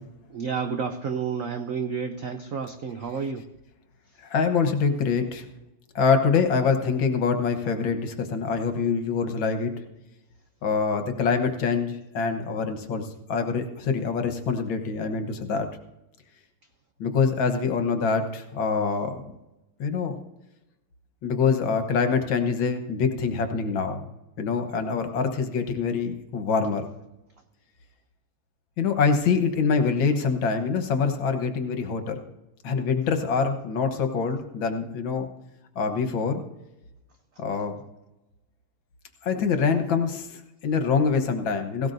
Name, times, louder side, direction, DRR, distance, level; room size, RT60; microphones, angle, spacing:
voice 1, 0.3-3.4, right 6 dB, 75° right, 0.7 m, -30 dB
voice 2, 4.3-5.4 6.0-9.7 10.6-15.7 17.0-19.3 19.8-20.2 21.2-24.1 24.4-26.9 28.8-32.3 32.6-35.3 35.8-36.4 37.4-37.8 39.2-41.9, left 5 dB, 70° left, 1.9 m, -25 dB
17.5 x 17.0 x 2.6 m
omnidirectional pair, 2.3 m